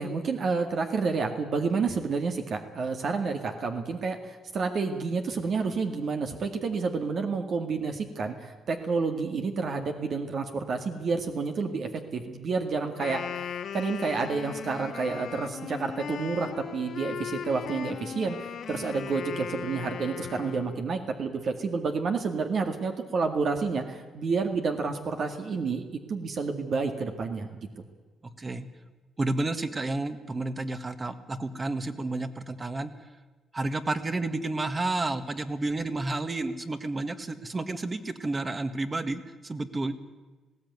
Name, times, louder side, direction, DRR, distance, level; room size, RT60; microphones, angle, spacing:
voice 1, 0.0-13.5 13.7-27.7, right 4 dB, 55° right, 5 dB, 2.0 m, -29 dB
Wind instrument woodwind instrument, 12.9-20.9, left 8 dB, 65° left, 1.6 m, -38 dB
voice 2, 28.2-28.7 29.2-33.1 33.5-39.9, right 2 dB, 25° right, 9 dB, 1.7 m, -31 dB
20.0 x 16.0 x 9.5 m, 1.3 s
cardioid pair, 90°, 0 cm